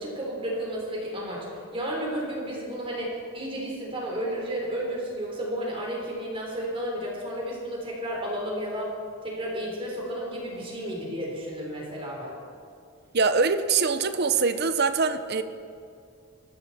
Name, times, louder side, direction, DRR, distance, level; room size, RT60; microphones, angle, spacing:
voice 1, 0.0-8.9 9.2-12.3, equal, 25° right, -3 dB, 3.8 m, -32 dB
voice 2, 13.1-15.4, right 4 dB, 50° right, 10 dB, 0.8 m, -23 dB
20.0 x 14.5 x 4.2 m, 2.4 s
head